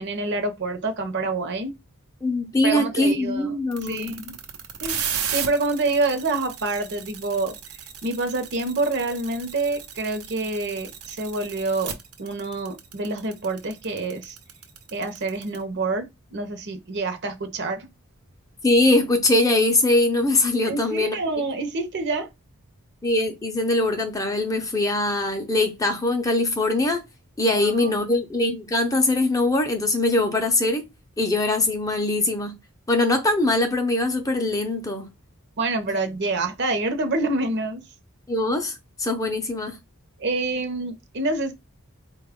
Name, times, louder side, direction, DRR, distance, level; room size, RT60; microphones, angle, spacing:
voice 1, 0.0-1.7 2.6-3.5 3.9-4.4 4.8-7.6 8.0-11.9 12.2-14.4 14.9-16.1 16.3-17.9 20.6-22.3 27.5-28.0 35.6-37.8 40.2-41.5, right 3 dB, 50° right, 0.7 m, -27 dB
voice 2, 2.2-4.1 18.6-21.2 23.0-27.0 27.4-30.9 31.2-32.6 32.9-35.1 38.3-39.8, left 2 dB, 15° left, 0.5 m, -22 dB
sound 1, 3.7-15.6, right 8 dB, 90° right, 0.8 m, -34 dB
4.2 x 2.3 x 3.5 m
head